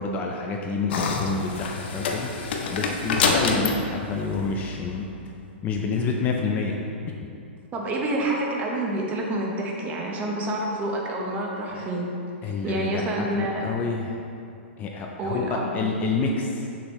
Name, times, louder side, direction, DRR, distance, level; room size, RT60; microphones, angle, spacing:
voice 1, 0.0-2.3 2.7-5.1 5.6-6.8 11.7-11.9 12.4-14.1 14.8-16.6, left 4 dB, 25° left, 0 dB, 0.5 m, -28 dB
sound 1, 0.9-5.2, left 4 dB, 60° left, 0.7 m, -27 dB
voice 2, 7.7-12.1 12.4-13.7 15.2-15.7, right 1 dB, 25° right, -1 dB, 0.9 m, -28 dB
6.5 x 6.1 x 3.1 m, 2.5 s
hypercardioid pair, 140°, 6 cm